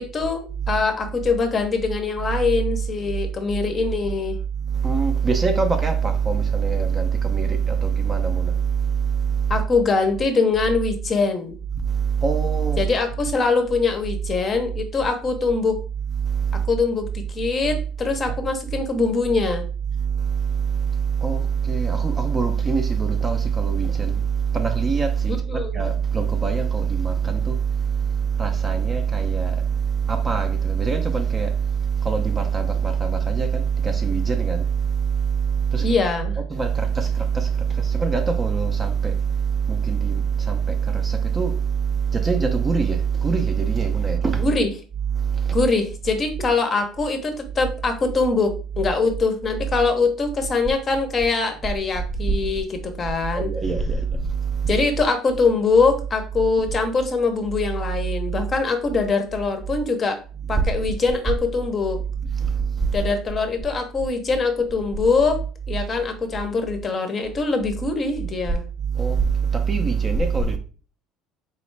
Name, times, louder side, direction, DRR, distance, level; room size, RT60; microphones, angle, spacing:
voice 1, 0.0-4.4 9.5-11.6 12.8-15.8 16.7-19.6 25.5-25.8 35.8-36.4 44.4-44.7 45.5-53.5 54.7-60.2 60.5-62.0 62.9-65.4 65.7-68.6, left 4 dB, 25° left, 0.7 m, -23 dB
voice 2, 2.3-2.6 3.0-3.2 4.5-9.6 11.7-12.9 16.1-16.7 17.7-17.8 18.3-18.4 19.9-36.1 36.4-44.5 45.0-45.6 51.9-52.3 53.2-54.8 58.3-58.4 60.4-60.6 62.1-63.1 68.8-70.6, right 6 dB, 20° right, 0.5 m, -23 dB
3.9 x 3.1 x 3.2 m
cardioid pair, 140°, 0 cm